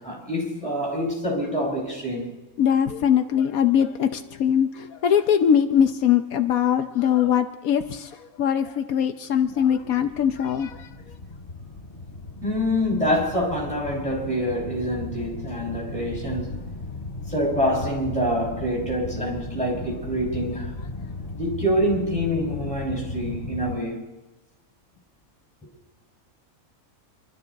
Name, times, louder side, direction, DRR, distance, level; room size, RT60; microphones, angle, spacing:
voice 1, 0.0-2.3 12.4-16.7 17.3-20.7 21.4-24.1, equal, 5° left, 5.6 m, -26 dB
voice 2, 2.6-8.1 8.4-10.9, left 8 dB, 80° left, 1.2 m, -21 dB
sound 1, 9.4-23.8, left 3 dB, 60° left, 2.3 m, -36 dB
26.5 x 13.0 x 4.1 m
omnidirectional pair, 1.5 m